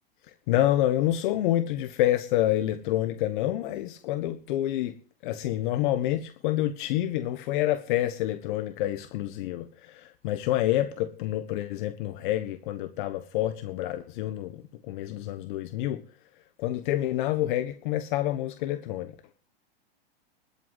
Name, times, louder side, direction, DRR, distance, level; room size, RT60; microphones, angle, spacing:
voice 1, 0.3-5.0 5.2-16.0 16.6-19.1, left 13 dB, 55° left, 1.4 m, -28 dB
12.0 x 8.6 x 9.4 m
hypercardioid pair, 135°, 30 cm